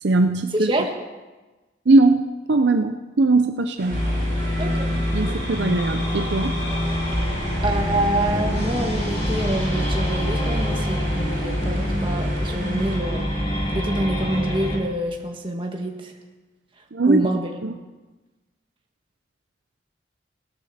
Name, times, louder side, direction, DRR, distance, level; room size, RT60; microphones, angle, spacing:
voice 1, 0.0-0.7 1.9-4.0 5.1-6.5 16.9-17.3 17.6-17.8, right 3 dB, 70° right, 7 dB, 0.6 m, -20 dB
voice 2, 0.5-0.9 4.6-4.9 7.6-16.1 17.1-17.5, right 1 dB, 25° right, 2 dB, 1.6 m, -27 dB
sound 1, 3.8-13.0, left 1 dB, 45° right, 4.9 m, -37 dB
sound 2, 3.9-14.8, equal, 35° left, 3.2 m, -25 dB
17.5 x 12.5 x 4.3 m, 1.2 s
head